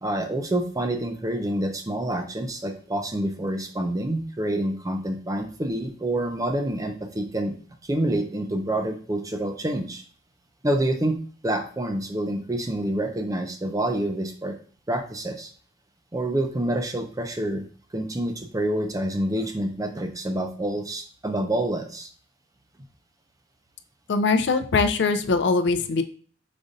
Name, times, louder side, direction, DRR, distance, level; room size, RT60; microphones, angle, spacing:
voice 1, 0.0-7.5 7.8-10.0 10.6-11.2 11.4-14.6 14.9-15.5 16.1-17.6 17.9-22.1, right 1 dB, 20° right, 6 dB, 0.5 m, -27 dB
voice 2, 24.1-26.0, left 4 dB, 60° left, 9 dB, 0.4 m, -22 dB
5.1 x 2.4 x 4.0 m, 0.43 s
head